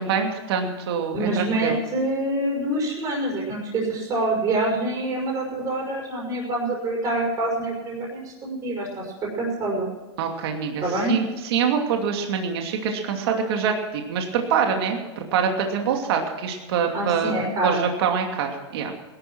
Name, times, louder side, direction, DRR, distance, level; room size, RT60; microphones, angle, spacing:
voice 1, 0.0-1.8 10.2-17.3 17.6-18.9, right 6 dB, 60° right, 3 dB, 2.7 m, -25 dB
voice 2, 1.1-9.9 10.8-11.1 16.9-17.8, right 1 dB, 25° right, -4 dB, 5.4 m, -26 dB
19.0 x 12.0 x 6.2 m, 1.2 s
supercardioid pair, 155°, 15 cm